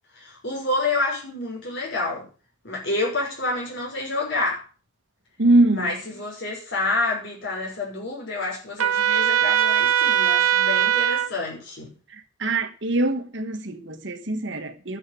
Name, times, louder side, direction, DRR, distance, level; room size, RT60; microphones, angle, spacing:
voice 1, 0.1-2.3 2.6-4.6 5.7-11.9, left 2 dB, 55° left, 6.1 m, -28 dB
voice 2, 5.4-5.9 12.1-15.0, right 2 dB, 55° right, 1.5 m, -23 dB
Trumpet, 8.8-11.3, right 9 dB, 80° right, 1.1 m, -20 dB
10.0 x 7.8 x 8.6 m
head